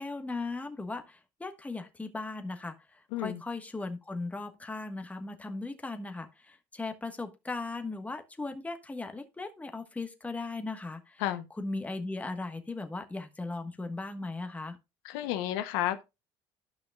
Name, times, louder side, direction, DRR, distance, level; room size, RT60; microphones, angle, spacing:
voice 1, 0.0-11.2 11.6-14.8, left 3 dB, 15° left, 1.3 m, -38 dB
voice 2, 15.0-16.0, left 13 dB, 90° left, 0.8 m, -31 dB
13.0 x 5.7 x 2.3 m
supercardioid pair, 95°, 11 cm